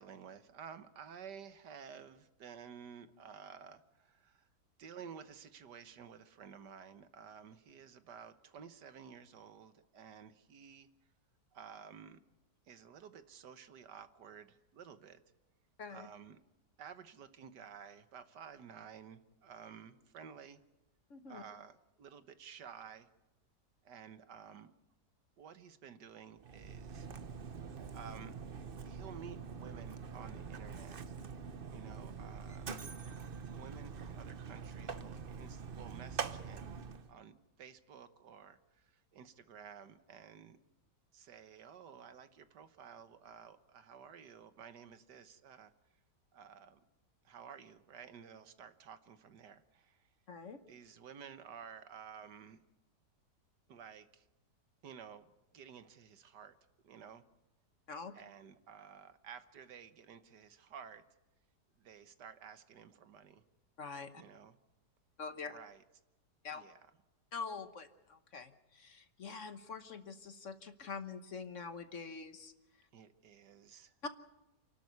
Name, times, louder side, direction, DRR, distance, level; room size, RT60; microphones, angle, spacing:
voice 1, 0.0-4.5 4.8-10.9 11.5-12.2 12.7-15.2 15.9-16.4 16.8-20.6 21.3-23.1 23.8-24.7 25.4-27.1 27.6-28.3 28.8-31.2 31.7-32.7 33.5-40.6 41.1-45.7 46.3-46.8 47.2-50.1 50.7-52.6 53.7-54.3 54.8-56.6 56.8-57.2 58.1-61.1 61.8-63.4 64.2-64.6 65.5-65.8 66.5-66.9 72.9-73.9, right 7 dB, 75° right, 11 dB, 1.7 m, -53 dB
voice 2, 21.1-21.4 50.3-50.6 57.9-58.1 63.8-64.1 65.2-65.6 66.4-66.6 67.3-72.5 74.0-74.1, left 5 dB, 50° left, 10 dB, 1.3 m, -45 dB
Mechanisms, 26.4-37.1, right 6 dB, 40° right, 0.9 m, -44 dB
28.5 x 12.5 x 9.5 m, 1.0 s
omnidirectional pair, 1.8 m